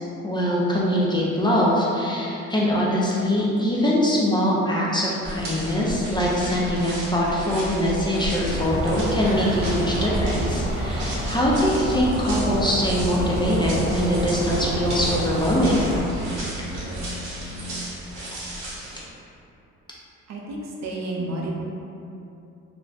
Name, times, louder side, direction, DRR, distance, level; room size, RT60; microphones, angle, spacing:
voice 1, 0.2-15.9 18.3-18.4, equal, 15° left, -5 dB, 0.4 m, -23 dB
sound 1, 5.2-19.0, right 1 dB, 80° right, 0.9 m, -34 dB
sound 2, 8.5-16.0, right 1 dB, 10° right, 0.9 m, -29 dB
sound 3, 12.2-17.7, equal, 55° left, 0.6 m, -34 dB
voice 2, 20.3-21.5, right 2 dB, 60° right, -2 dB, 0.5 m, -31 dB
2.4 x 2.1 x 3.4 m, 2.7 s
cardioid pair, 90°, 30 cm